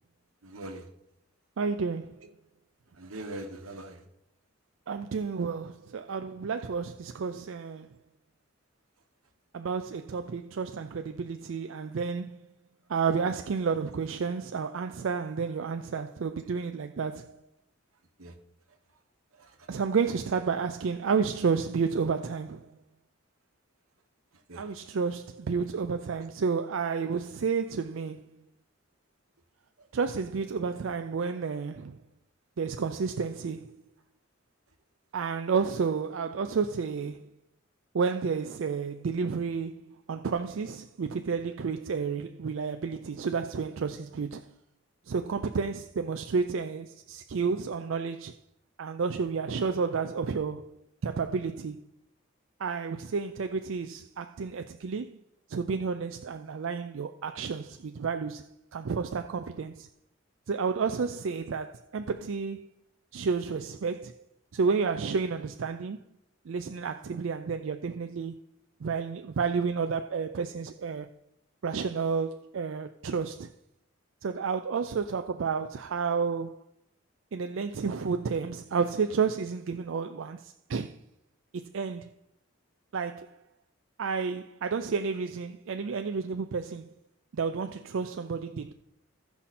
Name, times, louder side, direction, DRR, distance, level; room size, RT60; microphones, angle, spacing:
voice 1, 0.4-0.9 3.0-4.0 18.2-18.3 19.3-19.5 24.5-24.7 29.8-29.9, right 1 dB, 85° right, 1.3 m, -42 dB
voice 2, 1.6-2.2 4.9-8.0 9.5-12.5 12.9-17.4 19.7-22.8 24.6-28.4 29.9-32.0 32.6-33.8 35.1-37.3 37.9-44.5 45.1-48.4 48.8-50.7 51.0-51.8 52.6-55.2 55.5-58.5 58.7-59.9 60.5-62.7 63.1-64.1 64.5-66.0 66.5-68.4 68.8-71.1 71.6-73.5 74.2-76.6 77.3-81.0 81.5-82.1 82.9-83.4 84.0-86.9 87.3-88.7, right 5 dB, 65° right, 0.4 m, -31 dB
15.5 x 5.7 x 4.2 m
head